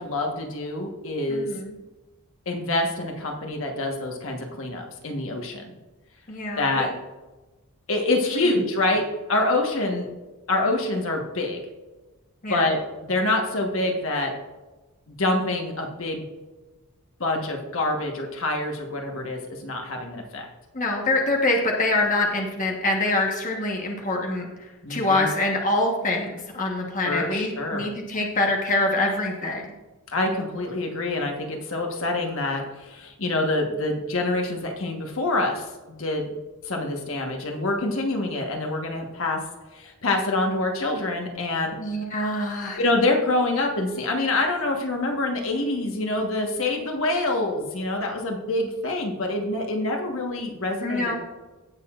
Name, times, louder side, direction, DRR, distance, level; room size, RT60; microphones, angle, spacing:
voice 1, 0.0-1.5 2.4-5.7 6.6-6.9 7.9-9.0 9.3-10.1 10.5-11.6 12.5-14.3 15.2-16.3 17.2-20.4 24.8-25.3 27.0-27.9 30.1-36.3 36.6-39.4 39.7-41.8 42.7-51.1, left 2 dB, 65° left, 2 dB, 1.3 m, -26 dB
voice 2, 1.3-1.7 6.3-6.9 8.4-8.6 12.4-12.6 20.7-29.6 41.8-42.8 50.8-51.1, left 2 dB, 35° left, 0 dB, 1.2 m, -25 dB
16.5 x 6.8 x 2.5 m, 1.2 s
head